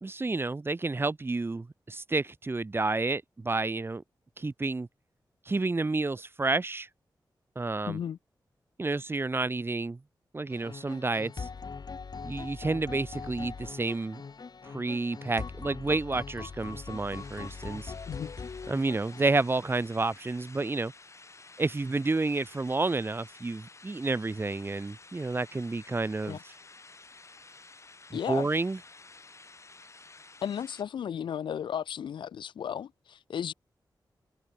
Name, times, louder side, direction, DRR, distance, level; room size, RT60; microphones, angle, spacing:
voice 1, 0.0-4.0 4.4-4.9 5.5-6.9 7.6-8.0 8.8-10.0 10.3-11.5 12.2-14.2 14.7-17.9 18.7-20.9 21.6-26.4 28.1-28.8, right 3 dB, 30° right, 0.8 m, -30 dB
voice 2, 7.8-8.2 18.1-18.3 26.2-26.4 28.1-28.5 30.4-33.5, left 8 dB, 85° left, 0.3 m, -34 dB
sound 1, 10.5-19.7, left 5 dB, 60° left, 2.4 m, -41 dB
sound 2, 16.6-30.8, left 3 dB, 35° left, 1.7 m, -52 dB
wide cardioid pair, 85°, 8 cm